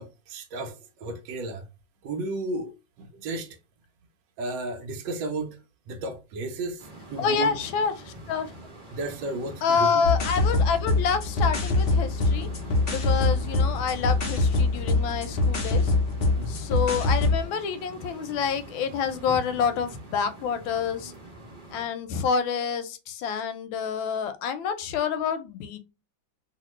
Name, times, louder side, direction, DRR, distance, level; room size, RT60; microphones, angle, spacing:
voice 1, 0.0-1.7 2.0-3.6 4.4-5.6 5.9-7.5 8.9-10.1 16.4-16.7, right 2 dB, 75° right, 1.2 m, -33 dB
sound 1, 6.8-21.9, right 1 dB, 35° right, 0.8 m, -44 dB
voice 2, 7.2-8.5 9.6-12.5 12.9-15.9 16.5-21.1 21.7-25.8, left 6 dB, 90° left, 1.4 m, -28 dB
sound 2, 10.0-17.4, left 3 dB, 60° left, 0.6 m, -24 dB
2.9 x 2.8 x 3.0 m
omnidirectional pair, 2.1 m